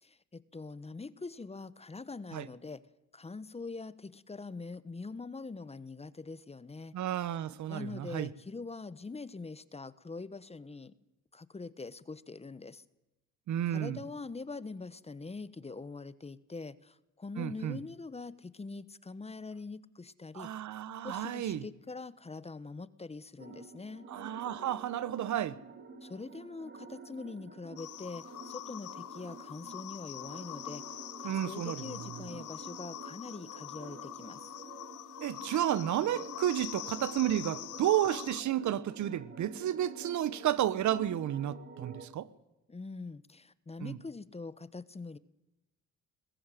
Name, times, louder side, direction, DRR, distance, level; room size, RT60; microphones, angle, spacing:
voice 1, 0.0-2.8 3.1-6.9 7.7-10.9 11.3-12.8 13.7-20.5 21.0-24.1 26.0-30.8 31.2-34.5 42.7-45.2, left 3 dB, 20° left, 1.1 m, -43 dB
voice 2, 6.9-8.3 13.5-14.0 17.4-17.8 20.3-21.7 24.1-25.6 31.2-32.2 35.2-42.3 43.8-44.0, right 11 dB, 70° right, 1.2 m, -32 dB
sound 1, 23.4-42.1, right 3 dB, 40° right, 3.4 m, -49 dB
sound 2, 27.8-38.4, left 15 dB, 80° left, 1.0 m, -44 dB
21.0 x 15.0 x 9.2 m
cardioid pair, 90°, 30 cm